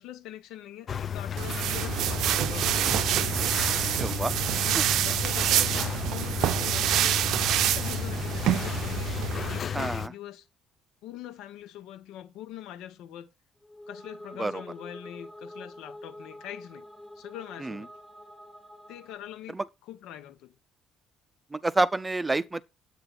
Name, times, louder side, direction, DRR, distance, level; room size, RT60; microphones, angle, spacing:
voice 1, 0.0-3.0 4.2-7.3 7.6-9.2 9.4-10.5 11.0-13.3 13.9-16.8 17.1-17.9 18.9-20.5, left 12 dB, 85° left, 1.4 m, -43 dB
sound 1, 0.9-10.1, left 8 dB, 35° left, 0.5 m, -33 dB
sound 2, 1.4-9.6, right 12 dB, 70° right, 0.6 m, -27 dB
voice 2, 4.0-4.3 4.7-4.8 9.7-10.1 14.4-14.5 17.6-17.8 19.5-19.6 21.5-22.6, right 2 dB, 10° right, 0.6 m, -28 dB
sound 3, 13.6-19.4, left 1 dB, 5° left, 1.3 m, -46 dB
9.8 x 8.6 x 4.4 m
cardioid pair, 150°, 0 cm